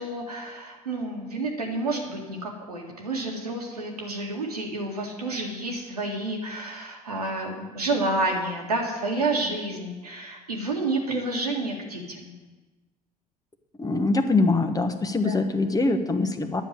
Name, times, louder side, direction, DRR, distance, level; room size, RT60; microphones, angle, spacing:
voice 1, 0.0-12.3 15.3-15.4, right 2 dB, 85° right, -1 dB, 2.1 m, -29 dB
voice 2, 13.8-16.6, left 3 dB, 20° left, 7 dB, 1.3 m, -23 dB
9.9 x 7.1 x 9.3 m, 1.2 s
figure-of-eight pair, 65°, 19 cm